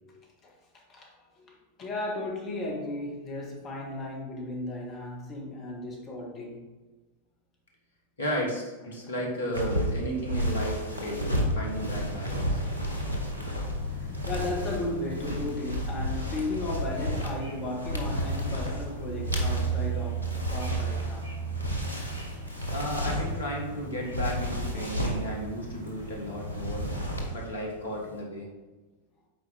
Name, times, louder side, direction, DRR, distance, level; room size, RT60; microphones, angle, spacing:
voice 1, 0.0-0.5 0.9-6.6 13.9-21.3, left 2 dB, 30° left, 1.7 m, -35 dB
voice 2, 8.2-12.6 22.7-26.9 27.3-28.5, equal, 70° left, 1.7 m, -34 dB
sound 1, 9.5-23.5 24.0-25.3 26.4-27.5 27.8-28.1, equal, 85° right, 1.0 m, -32 dB
sound 2, 11.7-27.2, right 4 dB, 85° left, 2.0 m, -37 dB
7.9 x 4.7 x 3.5 m
figure-of-eight pair, 90°, 0 cm